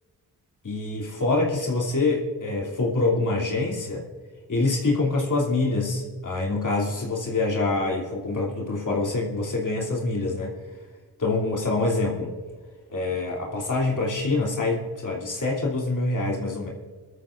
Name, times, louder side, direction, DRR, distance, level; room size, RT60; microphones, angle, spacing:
voice 1, 0.6-4.0 4.5-10.5 11.2-12.3 12.9-16.7, left 3 dB, 50° left, -3 dB, 2.9 m, -25 dB
21.0 x 13.5 x 2.5 m, 1.5 s
cardioid pair, 60°, 39 cm